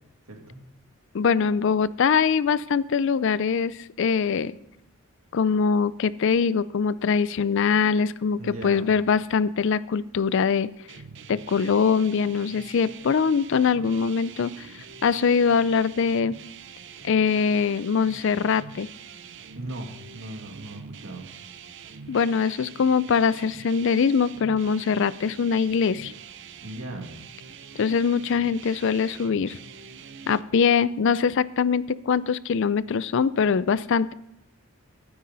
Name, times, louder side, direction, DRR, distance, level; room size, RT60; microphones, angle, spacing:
voice 1, 0.3-0.6 8.4-9.0 19.6-21.3 26.6-27.1, right 1 dB, 75° right, 2 dB, 2.3 m, -38 dB
voice 2, 1.1-4.5 5.3-10.7 11.3-14.7 15.0-16.4 17.0-18.9 22.1-26.1 27.8-29.6 30.3-34.1, left 6 dB, 55° left, 18 dB, 0.4 m, -23 dB
sound 1, 10.9-30.4, right 6 dB, 55° right, 0.6 m, -45 dB
12.5 x 9.5 x 4.0 m, 0.85 s
head